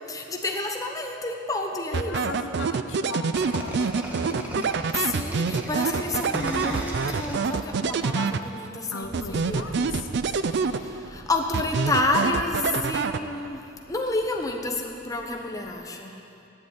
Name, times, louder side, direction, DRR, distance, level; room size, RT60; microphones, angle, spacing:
voice 1, 0.1-2.4 5.0-10.2 10.4-16.2, left 2 dB, 20° left, 2 dB, 1.0 m, -30 dB
voice 2, 1.9-4.8 8.9-10.1, left 3 dB, 70° left, 6 dB, 0.8 m, -37 dB
sound 1, 1.9-8.8 9.1-11.2 11.5-13.6, right 5 dB, 60° right, 0.4 m, -27 dB
sound 2, 3.4-8.1, equal, 10° right, 1.4 m, -36 dB
sound 3, 9.0-15.7, equal, 40° left, 1.9 m, -48 dB
12.0 x 7.9 x 8.9 m, 2.7 s
head